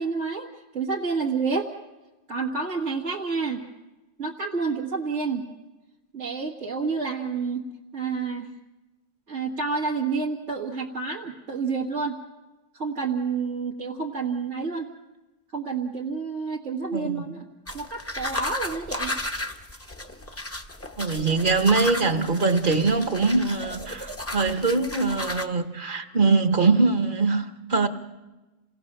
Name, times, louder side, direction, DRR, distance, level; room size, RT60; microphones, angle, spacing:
voice 1, 0.0-1.7 2.3-3.7 4.2-5.5 6.1-7.7 7.9-8.5 9.3-12.2 12.7-14.9 15.5-17.5 17.7-19.2, right 4 dB, 85° right, -4 dB, 2.0 m, -29 dB
voice 2, 16.9-17.2 21.0-27.9, right 3 dB, 45° right, 8 dB, 1.3 m, -22 dB
sound 1, 17.7-25.5, left 1 dB, 15° left, 1.0 m, -34 dB
27.5 x 18.0 x 6.6 m, 1.1 s
omnidirectional pair, 1.2 m